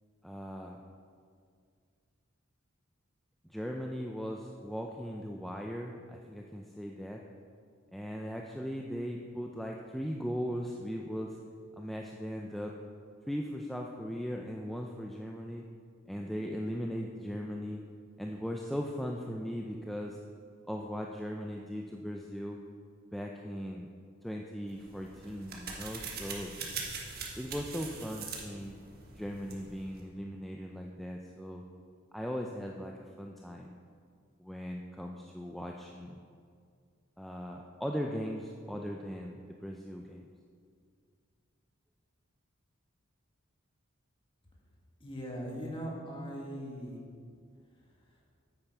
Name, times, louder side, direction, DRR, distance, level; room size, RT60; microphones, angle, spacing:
voice 1, 0.2-0.8 3.5-7.2 7.9-11.4 11.8-12.7 13.3-15.6 16.1-17.8 18.2-20.2 20.7-22.6 23.1-23.9 24.2-26.5 27.4-28.8 29.2-31.6 32.1-33.7 34.4-36.2 37.2-40.3, equal, ahead, 0 dB, 0.4 m, -38 dB
sound 1, 24.7-30.0, right 4 dB, 50° right, 1.4 m, -43 dB
voice 2, 45.0-47.0, equal, 25° left, -2 dB, 1.9 m, -39 dB
9.0 x 8.9 x 4.6 m, 2.2 s
head